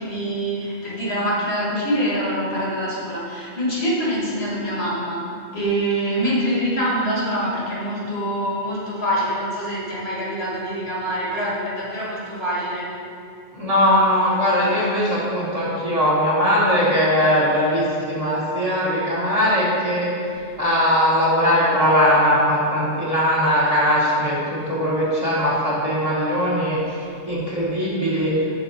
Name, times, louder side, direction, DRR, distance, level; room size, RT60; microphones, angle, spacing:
voice 1, 0.0-5.2 5.5-12.9, equal, 65° left, -6 dB, 1.7 m, -25 dB
voice 2, 13.5-20.1 20.6-28.3, equal, 35° right, -8 dB, 1.2 m, -20 dB
6.0 x 4.0 x 4.2 m, 2.5 s
omnidirectional pair, 1.2 m